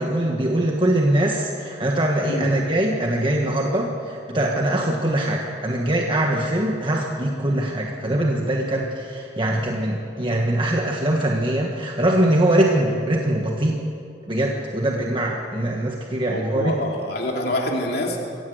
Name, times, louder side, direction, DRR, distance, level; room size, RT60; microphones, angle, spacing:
voice 1, 0.0-13.8 14.3-16.7, right 1 dB, 30° right, 0 dB, 1.5 m, -22 dB
voice 2, 16.3-18.2, left 1 dB, 65° left, 0 dB, 3.0 m, -26 dB
23.5 x 16.0 x 8.0 m, 2.6 s
head